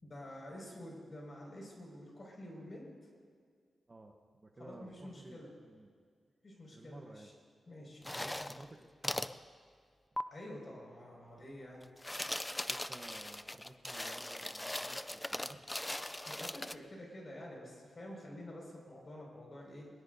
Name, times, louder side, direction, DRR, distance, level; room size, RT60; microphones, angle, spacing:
voice 1, 0.0-2.9 4.6-5.5 6.4-7.3 7.7-8.6 10.3-11.8 16.3-19.9, left 1 dB, 40° left, -2 dB, 5.7 m, -49 dB
voice 2, 3.9-5.9 6.7-7.3 8.1-9.3 12.7-15.7, right 2 dB, 30° right, 3 dB, 1.1 m, -55 dB
sound 1, 8.0-8.7 9.0-9.3 10.2-10.3 11.8-16.7, left 1 dB, 10° left, 0.4 m, -39 dB
23.5 x 21.0 x 2.7 m, 2.1 s
wide cardioid pair, 120°, 0 cm